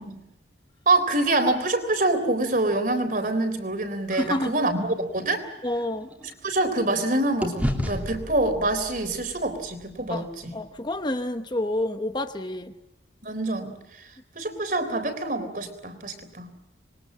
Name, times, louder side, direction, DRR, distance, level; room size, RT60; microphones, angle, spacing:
voice 1, 0.9-5.4 6.4-10.6 13.2-14.1 14.4-16.5, right 2 dB, 50° right, 7 dB, 3.8 m, -26 dB
voice 2, 4.1-4.6 5.6-6.1 10.1-10.3 10.5-12.7, left 1 dB, 25° left, 8 dB, 1.0 m, -28 dB
sound 1, 4.7-7.0 7.4-11.6, equal, 10° right, 2.8 m, -34 dB
26.5 x 22.0 x 7.5 m, 0.84 s
head